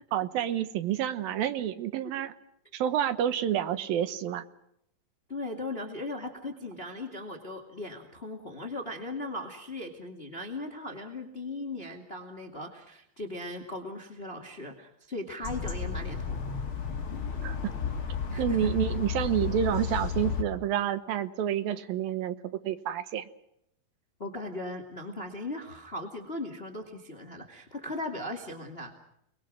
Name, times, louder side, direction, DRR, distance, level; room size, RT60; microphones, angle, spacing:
voice 1, 0.1-2.3 2.7-4.4 17.4-17.6 18.4-22.4 22.6-23.3, right 10 dB, 75° right, 12 dB, 2.9 m, -29 dB
voice 2, 5.3-16.4 18.3-18.7 24.2-28.9, left 2 dB, 20° left, 4 dB, 2.1 m, -38 dB
sound 1, 15.4-20.4, left 7 dB, 40° left, 3.0 m, -33 dB
29.5 x 21.5 x 6.3 m, 0.77 s
omnidirectional pair, 4.3 m